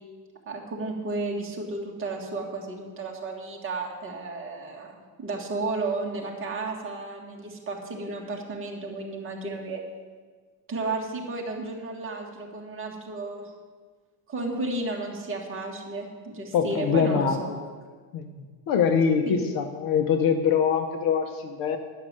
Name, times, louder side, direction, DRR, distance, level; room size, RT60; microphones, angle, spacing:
voice 1, 0.5-9.8 10.7-13.5 14.3-17.5 19.3-19.5, right 3 dB, 25° right, 0 dB, 1.8 m, -33 dB
voice 2, 16.5-17.7 18.1-18.3 18.7-21.8, left 7 dB, 45° left, 7 dB, 0.8 m, -24 dB
11.0 x 6.4 x 7.5 m, 1.5 s
cardioid pair, 160°, 49 cm